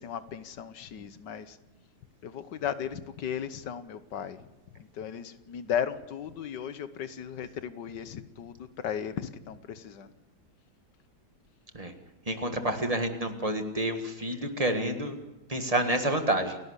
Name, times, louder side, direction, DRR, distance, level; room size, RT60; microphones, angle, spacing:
voice 1, 0.0-1.6 2.2-4.4 4.8-10.1, left 8 dB, 85° left, 13 dB, 1.7 m, -36 dB
voice 2, 12.3-15.2 15.5-16.6, right 1 dB, 20° right, 6 dB, 1.8 m, -29 dB
29.0 x 11.5 x 8.2 m, 1.0 s
omnidirectional pair, 1.8 m